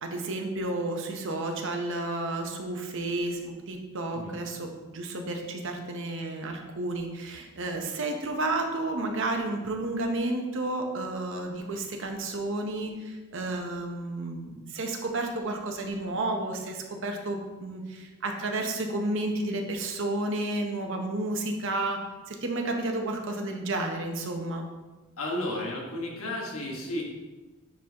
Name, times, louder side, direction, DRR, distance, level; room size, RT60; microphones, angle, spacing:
voice 1, 0.0-22.0 22.3-24.6, right 2 dB, 60° right, 3 dB, 0.9 m, -31 dB
voice 2, 25.2-27.0, left 1 dB, 75° left, -2 dB, 1.5 m, -33 dB
9.7 x 4.1 x 2.9 m, 1.2 s
head